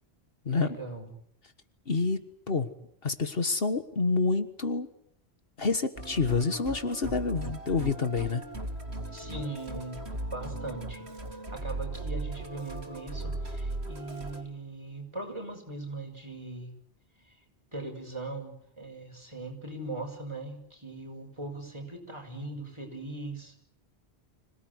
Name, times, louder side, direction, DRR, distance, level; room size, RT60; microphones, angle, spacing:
voice 1, 0.5-1.1 9.1-10.0 10.3-16.7 17.2-17.4 17.7-23.6, right 2 dB, 25° right, 3 dB, 6.1 m, -40 dB
voice 2, 1.9-2.2 2.5-2.7 3.0-4.9 5.6-8.4, left 4 dB, 65° left, 10 dB, 1.7 m, -28 dB
Musical instrument, 6.0-14.4, right 2 dB, 85° right, 2.7 m, -37 dB
26.0 x 18.0 x 9.6 m, 0.73 s
omnidirectional pair, 1.1 m